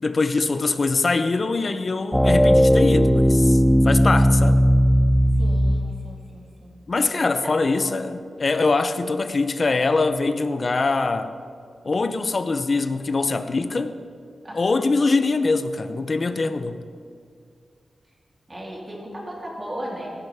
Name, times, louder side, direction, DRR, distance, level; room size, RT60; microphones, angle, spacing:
voice 1, 0.0-4.6 6.9-11.4 11.8-13.9 14.5-16.8, left 3 dB, 40° left, 0.7 m, -23 dB
sound 1, 2.1-6.0, equal, ahead, 0.3 m, -17 dB
voice 2, 5.4-6.7 7.0-7.1 7.4-7.5 14.4-14.7 18.5-20.1, equal, 20° right, 3.4 m, -36 dB
17.0 x 15.5 x 3.6 m
wide cardioid pair, 115°, 0 cm